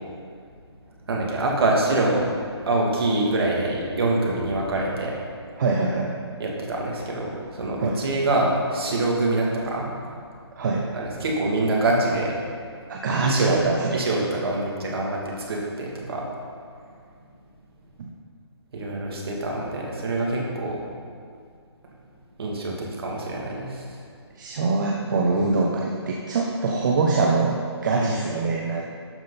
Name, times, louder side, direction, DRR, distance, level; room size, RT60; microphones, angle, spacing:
voice 1, 1.1-2.3 2.6-5.2 6.4-9.9 10.9-12.3 13.2-16.2 18.7-20.8 22.4-24.0 27.9-28.2, right 2 dB, 60° right, -2 dB, 2.7 m, -25 dB
voice 2, 5.6-6.1 7.8-8.0 10.6-10.9 12.9-14.0 18.0-18.1 24.4-28.8, right 3 dB, 45° right, -1 dB, 1.0 m, -24 dB
12.0 x 7.3 x 4.2 m, 2.2 s
hypercardioid pair, 155°, 14 cm